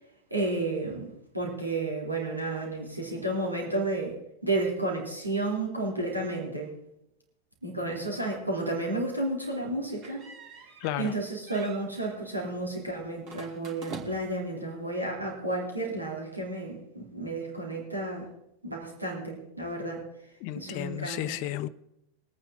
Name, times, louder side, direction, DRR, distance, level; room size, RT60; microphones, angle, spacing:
voice 1, 0.3-4.1 4.4-6.7 7.6-10.3 11.0-18.3 18.6-20.0 20.5-21.4, right 2 dB, 85° right, 2.9 m, -32 dB
sound 1, 10.0-11.2 11.5-11.9 13.2-14.4, right 6 dB, 40° right, 2.1 m, -45 dB
voice 2, 10.8-11.1 20.4-21.7, left 14 dB, 45° left, 0.6 m, -33 dB
22.5 x 9.0 x 3.6 m
figure-of-eight pair, 90°, 0 cm